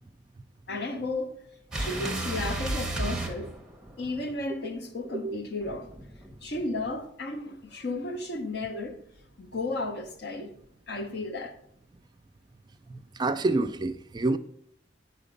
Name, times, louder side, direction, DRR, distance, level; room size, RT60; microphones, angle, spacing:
voice 1, 0.7-1.4 1.7-3.5 4.0-5.9 6.4-9.0 9.4-10.5 10.9-11.6, left 2 dB, 60° left, 0.9 m, -33 dB
sound 1, 1.7-4.2 5.6-6.9, right 2 dB, 5° right, 0.8 m, -33 dB
voice 2, 12.9-14.4, right 2 dB, 25° right, 0.3 m, -28 dB
7.9 x 4.4 x 5.1 m
head